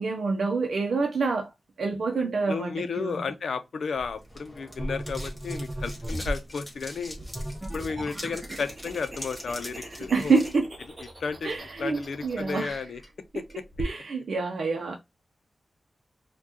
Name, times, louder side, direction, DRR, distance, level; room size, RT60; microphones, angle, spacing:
voice 1, 0.0-1.5 1.8-3.3 10.1-10.7 11.4-12.8 13.8-14.9, right 4 dB, 80° right, 0.6 m, -27 dB
voice 2, 2.2-7.2 7.7-10.4 11.2-13.0 13.3-13.6, left 5 dB, 80° left, 0.5 m, -33 dB
sound 1, 3.9-10.5, equal, 5° left, 1.5 m, -44 dB
sound 2, 4.8-6.4 7.1-12.6, right 1 dB, 20° right, 0.8 m, -38 dB
Clock, 6.1-13.8, equal, 35° left, 1.2 m, -44 dB
4.4 x 2.3 x 2.8 m
wide cardioid pair, 145°, 0 cm